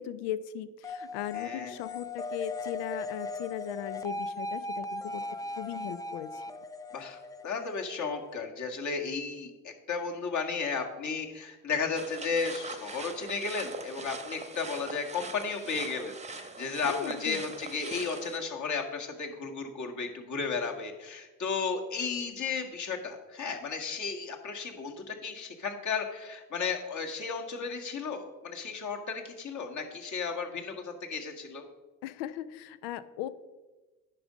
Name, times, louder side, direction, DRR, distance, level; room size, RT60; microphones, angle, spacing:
voice 1, 0.0-5.2 5.6-6.4 16.8-17.4 32.0-33.3, left 11 dB, 70° left, 15 dB, 0.7 m, -38 dB
sound 1, 0.8-8.3, left 2 dB, 10° left, 0.4 m, -38 dB
voice 2, 1.3-1.8 6.9-31.6, left 5 dB, 45° left, 2 dB, 1.8 m, -34 dB
sound 2, 12.0-18.4, right 3 dB, 15° right, 1.0 m, -42 dB
9.9 x 5.4 x 5.1 m, 1.2 s
hypercardioid pair, 65°, 42 cm